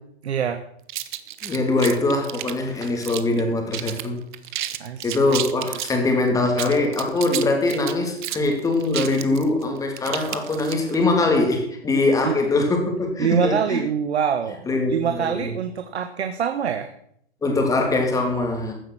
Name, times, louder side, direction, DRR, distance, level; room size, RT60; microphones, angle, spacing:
voice 1, 0.2-0.6 4.8-5.4 12.2-12.4 13.2-14.6 14.9-16.9, right 7 dB, 80° right, 9 dB, 1.2 m, -25 dB
sound 1, 0.9-3.4 3.7-4.1 4.3-6.0 6.5-11.0, right 13 dB, 45° right, 1.1 m, -31 dB
voice 2, 1.4-4.2 5.0-13.8 14.7-15.5 17.4-18.7, left 2 dB, 10° left, 3 dB, 2.8 m, -22 dB
15.0 x 8.0 x 6.2 m, 0.71 s
hypercardioid pair, 140°, 32 cm